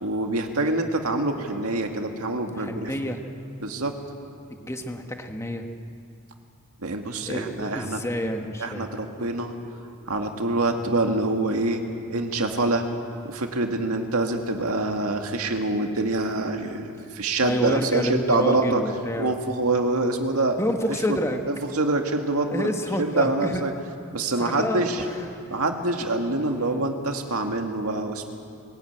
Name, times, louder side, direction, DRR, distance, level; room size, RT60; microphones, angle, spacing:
voice 1, 0.0-2.9 3.6-3.9 6.8-8.0 8.6-9.6 10.1-11.8 12.1-12.9 13.2-18.8 19.2-20.6 21.1-21.2 21.5-22.7 23.0-23.7 24.1-25.0 25.5-28.3, right 2 dB, 75° right, 4 dB, 2.0 m, -25 dB
voice 2, 2.6-3.2 4.5-5.7 7.3-8.9 17.4-19.3 20.6-21.4 22.4-23.7 24.4-25.6, left 1 dB, 10° left, 5 dB, 1.2 m, -29 dB
21.0 x 16.0 x 9.3 m, 2.4 s
head